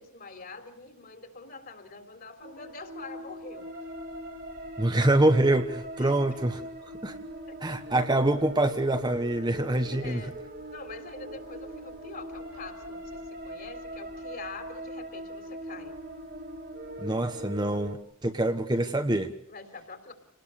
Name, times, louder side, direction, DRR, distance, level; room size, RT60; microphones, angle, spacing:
voice 1, 0.0-3.9 6.0-6.2 7.5-7.6 10.0-10.4 10.7-16.0 19.5-20.1, left 3 dB, 40° left, 7 dB, 3.7 m, -45 dB
sound 1, 2.4-18.0, right 1 dB, 45° right, 2.5 m, -41 dB
voice 2, 4.8-6.6 7.0-7.1 7.6-10.2 17.0-19.3, right 1 dB, 20° right, 7 dB, 1.1 m, -25 dB
28.5 x 19.5 x 6.8 m, 0.68 s
head